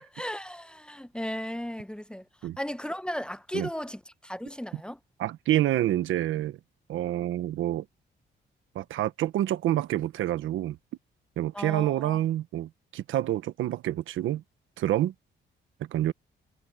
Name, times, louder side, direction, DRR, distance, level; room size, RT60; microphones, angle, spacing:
voice 1, 0.0-2.2 2.6-5.0 11.5-12.2, equal, 5° left, 0.9 m, -36 dB
voice 2, 5.2-6.6 6.9-7.8 8.7-10.8 11.4-14.4 14.8-15.1 15.9-16.1, right 13 dB, 80° right, 1.2 m, -27 dB
cardioid pair, 90°, 20 cm